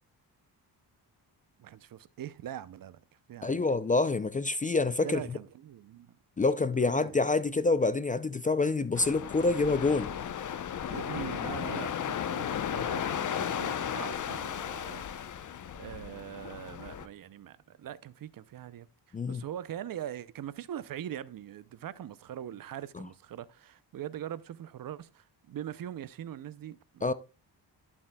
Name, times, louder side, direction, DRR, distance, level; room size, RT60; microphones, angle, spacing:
voice 1, 1.6-3.0 3.3-3.7 5.0-6.2 6.8-7.1 10.9-15.1 15.7-27.0, right 11 dB, 55° right, 0.6 m, -42 dB
voice 2, 3.4-5.4 6.4-10.1 19.1-19.4 27.0-27.1, left 3 dB, 20° left, 0.4 m, -27 dB
sound 1, 8.9-17.1, left 9 dB, 45° left, 0.7 m, -35 dB
11.5 x 7.2 x 2.2 m
cardioid pair, 105°, 41 cm